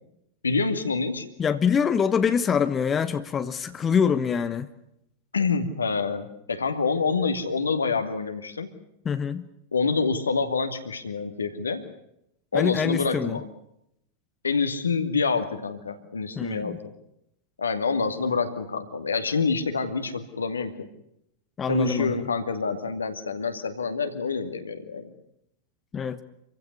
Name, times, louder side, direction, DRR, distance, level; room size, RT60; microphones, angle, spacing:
voice 1, 0.4-1.3 5.3-8.7 9.7-11.8 12.5-13.4 14.4-16.9 17.6-20.9 21.7-25.1, left 4 dB, 75° left, 7 dB, 2.4 m, -27 dB
voice 2, 1.4-4.7 9.0-9.5 12.5-13.4 16.4-16.8 21.6-22.3 25.9-26.2, left 7 dB, 20° left, 11 dB, 1.1 m, -25 dB
27.0 x 16.0 x 9.7 m, 0.80 s
figure-of-eight pair, 90°, 0 cm